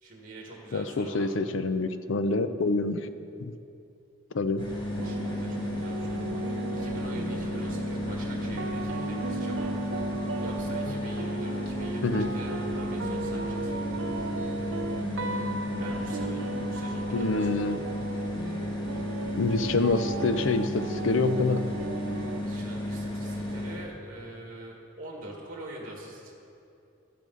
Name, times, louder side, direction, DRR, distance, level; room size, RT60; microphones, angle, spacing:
voice 1, 0.0-1.3 5.0-6.5 6.7-9.7 10.0-10.1 10.4-13.9 15.8-17.8 22.4-26.3, right 1 dB, 40° right, -1 dB, 1.6 m, -44 dB
voice 2, 0.7-3.1 3.4-3.5 4.3-4.7 12.0-12.3 17.1-17.8 19.4-21.6, left 3 dB, 65° left, 11 dB, 0.5 m, -26 dB
sound 1, 4.6-23.9, left 1 dB, 25° left, 1.4 m, -33 dB
sound 2, 5.0-22.4, right 3 dB, 60° right, 0.5 m, -36 dB
12.5 x 9.9 x 3.9 m, 2.6 s
head